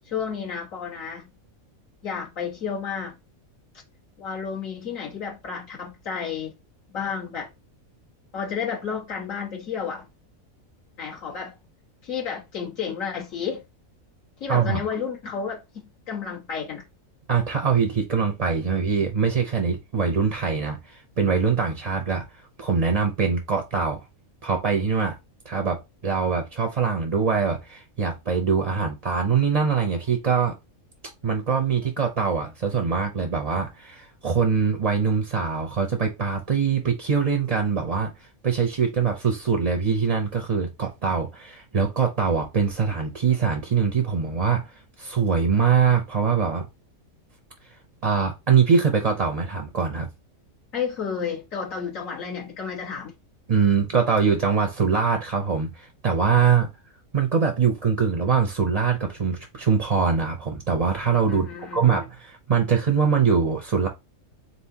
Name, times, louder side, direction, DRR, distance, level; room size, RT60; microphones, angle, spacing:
voice 1, 0.1-1.3 2.0-3.2 4.2-6.5 6.9-7.5 8.3-10.0 11.0-11.6 12.0-13.6 14.4-16.8 50.7-53.1 61.3-62.0, left 6 dB, 65° left, 1.9 m, -31 dB
voice 2, 14.5-14.8 17.3-22.2 22.6-24.0 24.4-25.2 25.4-30.6 31.2-38.1 38.4-44.7 45.0-46.7 48.0-50.1 53.5-56.7 57.1-61.5 61.7-63.9, right 6 dB, 40° right, 0.5 m, -23 dB
4.1 x 3.9 x 2.8 m
omnidirectional pair, 1.5 m